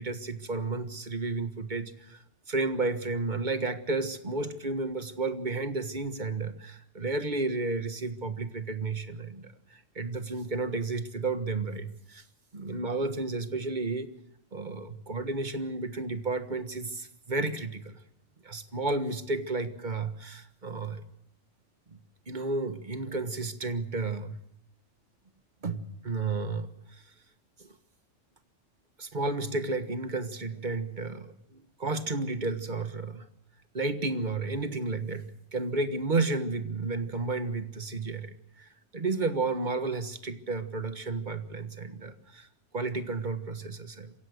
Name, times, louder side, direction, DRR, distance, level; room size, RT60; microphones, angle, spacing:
voice 1, 0.0-12.2 12.5-14.1 14.5-18.0 18.4-21.0 21.9-22.0 22.3-24.4 25.6-27.0 27.6-27.7 29.0-33.3 33.7-42.5 42.7-44.1, right 3 dB, 40° right, 10 dB, 1.6 m, -32 dB
27.0 x 16.0 x 6.5 m, 0.76 s
omnidirectional pair, 1.3 m